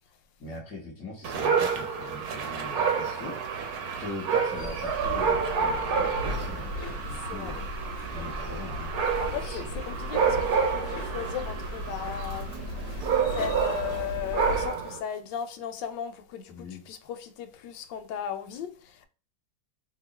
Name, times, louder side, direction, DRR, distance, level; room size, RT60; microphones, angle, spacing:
voice 1, 0.4-3.4 4.0-7.7 8.1-8.9 9.4-9.6 16.5-16.8, left 2 dB, 10° left, 0.9 m, -41 dB
Dog, 1.2-15.0, right 6 dB, 65° right, 1.0 m, -29 dB
sound 1, 4.5-14.7, left 1 dB, 50° left, 0.8 m, -37 dB
voice 2, 7.0-7.6 9.2-12.7 13.3-19.1, left 8 dB, 80° left, 1.2 m, -36 dB
2.8 x 2.6 x 4.1 m
omnidirectional pair, 2.0 m